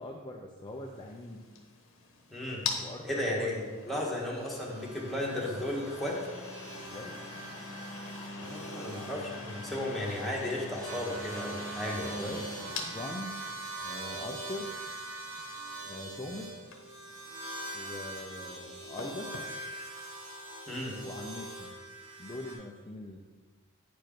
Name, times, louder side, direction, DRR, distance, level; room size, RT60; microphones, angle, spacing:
voice 1, 0.0-1.4 2.7-3.7 6.9-7.1 11.8-13.4 13.8-14.7 15.8-16.7 17.7-19.3 21.0-21.7 22.2-23.2, left 1 dB, 20° left, -1 dB, 0.5 m, -42 dB
sound 1, 0.8-19.5, left 3 dB, 60° left, 1.0 m, -44 dB
voice 2, 2.3-2.6 3.0-3.6 3.9-6.2 8.4-12.2 20.7-20.9, left 1 dB, ahead, -4 dB, 1.4 m, -34 dB
sound 2, 4.4-22.5, right 2 dB, 75° right, 1.9 m, -43 dB
9.2 x 4.9 x 4.5 m, 1.4 s
head